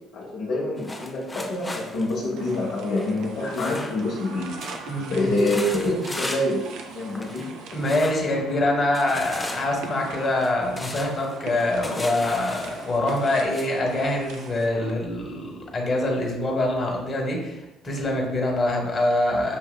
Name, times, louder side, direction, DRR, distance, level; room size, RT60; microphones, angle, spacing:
voice 1, 0.1-4.6 5.1-7.5, left 1 dB, 65° left, -4 dB, 0.8 m, -26 dB
sound 1, 0.8-4.3 4.6-4.9 5.2-6.6 6.9-7.5 7.8-8.3 8.9-13.7, left 1 dB, 15° left, 0.5 m, -37 dB
sound 2, 2.4-14.9, right 4 dB, 65° right, 0.4 m, -41 dB
voice 2, 4.9-5.3 7.7-17.6 17.8-19.6, left 1 dB, 35° left, -1 dB, 1.1 m, -24 dB
6.4 x 2.7 x 2.2 m, 1.0 s
hypercardioid pair, 55°, 0 cm